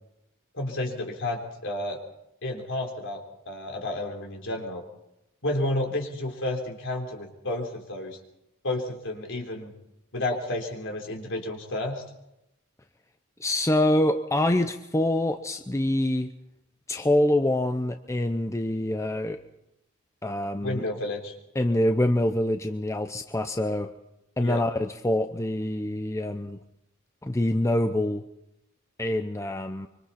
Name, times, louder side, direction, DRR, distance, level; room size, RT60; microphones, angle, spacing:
voice 1, 0.5-2.0 2.4-4.8 5.4-8.2 8.6-9.7 10.1-12.0 20.6-21.3 24.4-24.6, left 1 dB, 60° left, 2 dB, 3.9 m, -31 dB
voice 2, 13.4-16.3 16.9-19.4 20.2-20.8 21.5-23.9 24.4-26.6 27.2-28.2 29.0-29.9, left 1 dB, 15° left, 7 dB, 0.7 m, -25 dB
25.0 x 24.5 x 4.3 m, 0.85 s
head